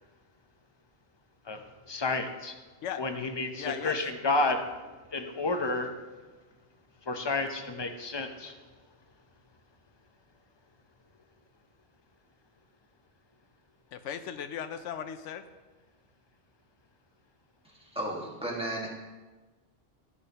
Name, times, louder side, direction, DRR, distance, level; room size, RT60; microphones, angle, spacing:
voice 1, 1.5-2.5 3.0-4.7 5.1-6.0 7.1-8.5, left 3 dB, 30° left, 6 dB, 0.6 m, -31 dB
voice 2, 3.5-4.0 13.9-15.4, left 8 dB, 85° left, 10 dB, 0.9 m, -37 dB
voice 3, 17.8-18.9, right 1 dB, 5° right, -3 dB, 1.6 m, -34 dB
14.0 x 6.2 x 2.9 m, 1.2 s
omnidirectional pair, 1.2 m